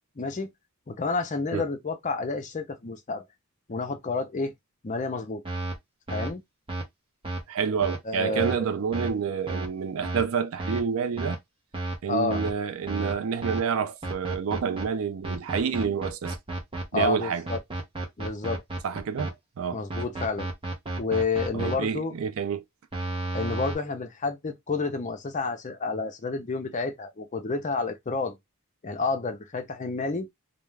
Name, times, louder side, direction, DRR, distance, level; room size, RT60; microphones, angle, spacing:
voice 1, 0.2-0.5 0.9-3.2 3.7-4.5 4.8-5.4 6.1-6.4 8.0-8.6 12.1-12.4 16.9-17.6 18.2-18.6 19.7-20.5 21.0-22.1 23.3-28.4 28.8-30.3, left 3 dB, 35° left, 0.5 m, -30 dB
sound 1, 5.4-5.8 6.1-6.3 6.7-6.8 7.2-7.4 7.8-8.0 8.4-8.5 8.9-9.1 9.5-9.7 10.0-10.2 10.6-10.8 11.2-11.4 11.7-12.0 12.3-12.5 12.9-13.1 13.4-13.6 14.0-14.8 15.2-17.1 17.5-19.3 19.9-21.7 22.9-23.8, right 2 dB, 25° right, 0.6 m, -32 dB
voice 2, 7.5-11.4 12.0-16.4 16.9-17.5 18.8-19.8 21.5-22.6, right 6 dB, 65° right, 0.4 m, -28 dB
2.3 x 2.3 x 3.1 m
head